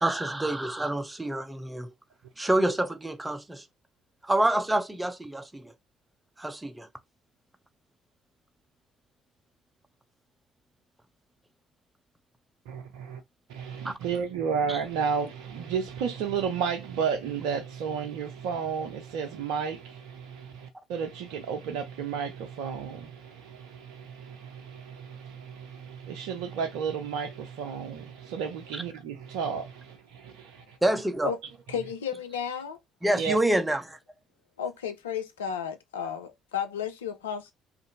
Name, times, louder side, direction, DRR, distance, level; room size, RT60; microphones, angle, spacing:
voice 1, 0.0-1.9 2.4-3.6 4.2-5.7 6.4-6.9 13.8-13.9 14.7-14.8 30.8-31.3 33.0-34.0, right 1 dB, 15° right, 0.6 m, -27 dB
voice 2, 12.7-13.2 13.5-30.8 33.2-33.4, right 6 dB, 70° right, 0.5 m, -32 dB
voice 3, 31.7-32.8 34.6-37.5, left 7 dB, 85° left, 0.4 m, -33 dB
2.5 x 2.5 x 2.7 m
hypercardioid pair, 50°, 0 cm